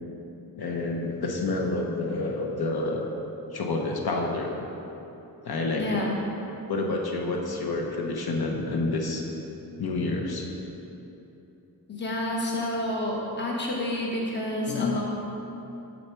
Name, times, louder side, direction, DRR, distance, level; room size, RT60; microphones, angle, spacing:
voice 1, 0.6-3.1 3.5-4.5 5.4-6.0 6.7-9.2 9.8-10.5 14.6-15.0, left 2 dB, 70° left, 1 dB, 0.8 m, -28 dB
voice 2, 5.7-6.1 11.9-15.0, left 1 dB, 30° left, -3 dB, 1.0 m, -29 dB
8.0 x 4.2 x 4.4 m, 2.9 s
wide cardioid pair, 90°, 38 cm